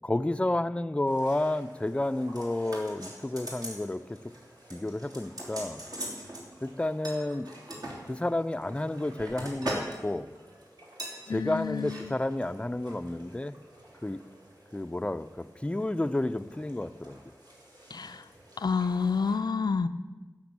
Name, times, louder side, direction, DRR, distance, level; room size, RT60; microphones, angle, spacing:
voice 1, 0.0-4.2 4.7-5.8 6.6-7.5 8.0-10.3 11.3-13.5 14.0-14.2 14.7-17.2, left 1 dB, 15° left, 11 dB, 0.4 m, -31 dB
sound 1, 1.1-19.4, right 1 dB, 90° right, 3.0 m, -55 dB
sound 2, 2.4-3.8 4.1-4.4 4.7-6.4 7.0-8.0 8.6-10.0 10.3-10.5 11.0-11.2 11.7-12.0 12.3-12.4, right 1 dB, 65° right, 2.9 m, -39 dB
voice 2, 11.3-12.2 17.9-18.2 18.6-19.9, left 5 dB, 90° left, 10 dB, 0.4 m, -29 dB
12.0 x 6.0 x 8.5 m, 1.3 s
wide cardioid pair, 65°, 7 cm